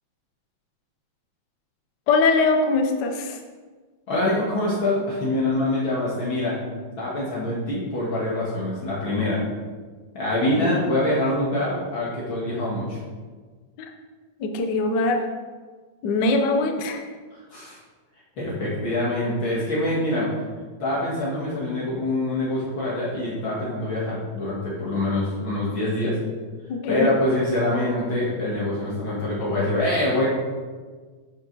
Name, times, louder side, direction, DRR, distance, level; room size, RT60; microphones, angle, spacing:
voice 1, 2.1-3.4 10.5-10.8 13.8-13.9 14.4-15.3 16.0-17.0 26.7-27.1, left 3 dB, 80° left, 3 dB, 0.9 m, -22 dB
voice 2, 4.1-6.6 7.0-9.4 10.1-13.0 17.5-17.8 18.4-20.3 20.8-26.2 26.9-30.3, left 1 dB, 50° left, -7 dB, 2.2 m, -25 dB
10.5 x 6.4 x 4.0 m, 1.5 s
omnidirectional pair, 3.3 m